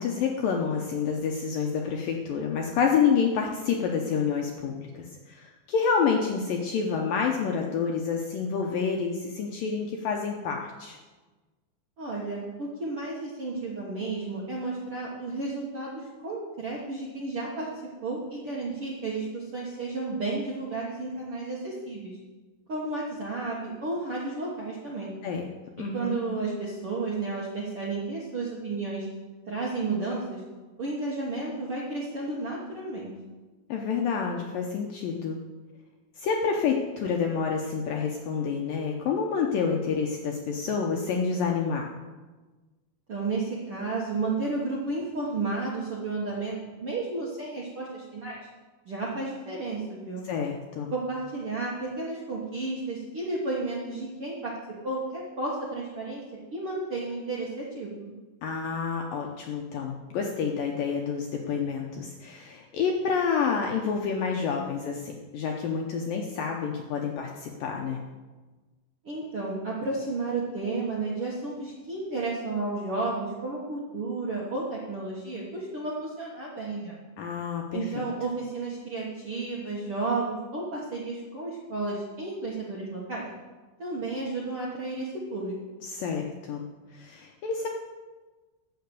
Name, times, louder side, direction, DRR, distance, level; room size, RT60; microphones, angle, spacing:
voice 1, 0.0-11.0 25.2-25.5 25.8-26.2 33.7-35.4 36.2-41.9 50.3-50.9 58.4-68.0 77.2-77.8 85.8-86.6 86.9-87.7, left 6 dB, 75° left, 1 dB, 2.1 m, -28 dB
voice 2, 12.0-17.7 18.0-22.1 22.7-25.1 25.8-29.1 29.5-30.4 30.8-33.1 43.1-48.4 48.8-50.3 50.9-54.6 54.8-56.2 56.5-58.1 69.0-76.9 77.7-83.2 83.8-85.6, right 3 dB, 60° right, -4 dB, 1.5 m, -32 dB
13.5 x 5.8 x 8.1 m, 1.3 s
omnidirectional pair, 5.0 m